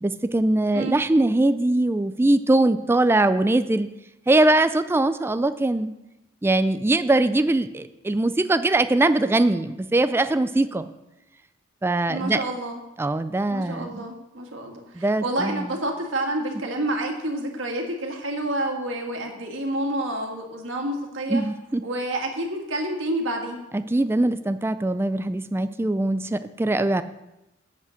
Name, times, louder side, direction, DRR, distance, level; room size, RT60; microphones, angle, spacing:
voice 1, 0.0-3.9 4.3-5.9 6.4-10.9 11.8-12.4 13.0-14.1 15.0-15.7 21.3-21.8 23.7-27.0, right 2 dB, 10° right, 11 dB, 0.3 m, -22 dB
voice 2, 12.1-12.8 13.5-21.4 21.8-23.6, right 1 dB, 80° right, 1 dB, 1.9 m, -29 dB
8.1 x 7.4 x 6.4 m, 0.94 s
head